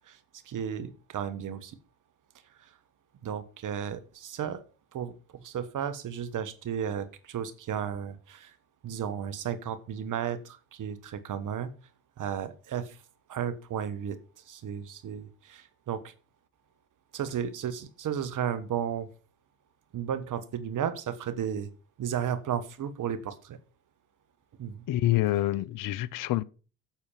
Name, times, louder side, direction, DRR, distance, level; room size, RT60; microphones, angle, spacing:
voice 1, 0.4-1.8 2.6-2.7 3.2-4.6 4.9-8.5 8.8-11.7 12.2-13.0 13.3-14.2 14.5-16.1 17.1-19.1 19.9-21.7 22.0-23.6 24.6-24.8, right 8 dB, 50° right, 1.5 m, -34 dB
voice 2, 24.9-26.4, left 14 dB, 55° left, 0.7 m, -27 dB
10.5 x 6.7 x 5.7 m
hypercardioid pair, 60°, 38 cm